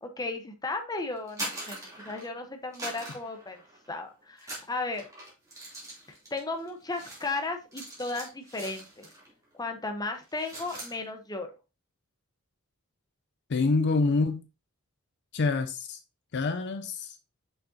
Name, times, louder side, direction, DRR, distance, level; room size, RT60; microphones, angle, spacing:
voice 1, 0.0-3.6 3.9-5.1 6.3-9.1 9.6-11.5, left 3 dB, 20° left, 0.9 m, -35 dB
sound 1, 1.2-2.4 2.7-4.0 4.4-9.3 9.6-9.8 10.1-11.0, right 1 dB, 15° right, 2.9 m, -42 dB
voice 2, 13.5-14.4 15.3-16.0 16.3-17.2, left 3 dB, 55° left, 0.5 m, -26 dB
6.2 x 5.7 x 2.7 m
head